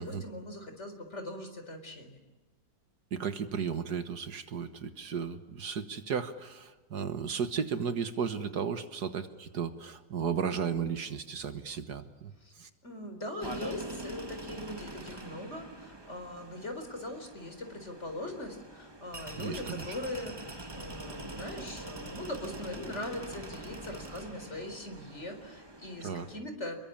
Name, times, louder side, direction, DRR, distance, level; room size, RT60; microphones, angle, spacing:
voice 1, 0.0-2.2 12.4-12.5 12.8-20.3 20.7-26.8, left 1 dB, 40° left, 6 dB, 4.5 m, -41 dB
voice 2, 3.1-12.7 19.3-19.9 26.0-26.3, right 6 dB, 65° right, 10 dB, 1.9 m, -34 dB
sound 1, 13.4-26.4, right 2 dB, 15° right, 1.5 m, -44 dB
28.0 x 22.0 x 8.7 m, 1.2 s
omnidirectional pair, 1.9 m